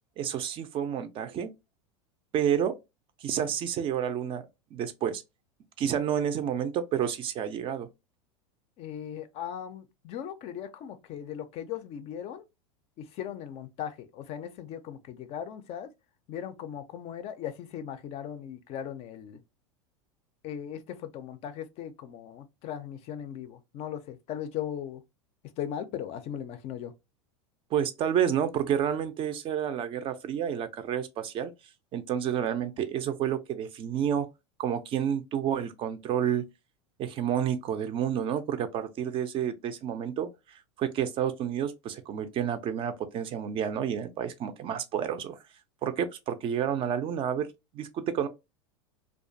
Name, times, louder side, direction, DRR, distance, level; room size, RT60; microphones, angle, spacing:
voice 1, 0.2-1.5 2.3-2.8 3.2-5.2 5.8-7.9 27.7-31.5 31.9-34.3 34.6-36.4 37.0-45.4 45.8-47.5 47.7-48.3, right 9 dB, 35° right, 0.4 m, -30 dB
voice 2, 8.8-12.4 13.0-15.9 16.3-19.4 20.4-25.0 25.6-26.9, left 9 dB, 40° left, 0.4 m, -38 dB
2.3 x 2.2 x 2.5 m
hypercardioid pair, 100°, 16 cm